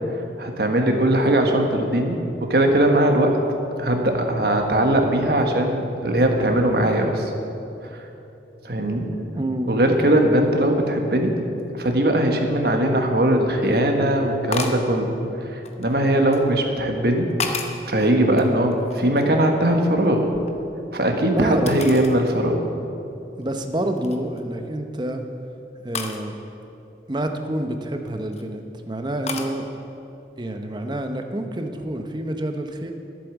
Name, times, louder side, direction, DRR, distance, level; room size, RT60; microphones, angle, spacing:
voice 1, 0.4-3.4 3.8-7.3 7.8-8.0 8.6-9.2 9.7-11.4 11.7-15.1 15.4-17.3 17.9-20.3 20.9-22.6, right 1 dB, 60° right, 3 dB, 1.4 m, -20 dB
voice 2, 9.3-9.8 21.3-21.7 23.4-25.2 25.8-26.3 27.1-29.7 30.4-32.9, right 1 dB, 25° right, 5 dB, 0.8 m, -28 dB
sound 1, 13.0-13.1 14.5-14.9 15.6-16.4 17.0-17.9 18.3-19.4 19.7-21.0 21.7-22.2 22.7-22.8 23.4-23.6 24.0-24.4 25.9-26.2 27.9-28.4 29.3-29.5, left 4 dB, 35° left, 0.9 m, -32 dB
11.5 x 8.4 x 7.3 m, 2.9 s
head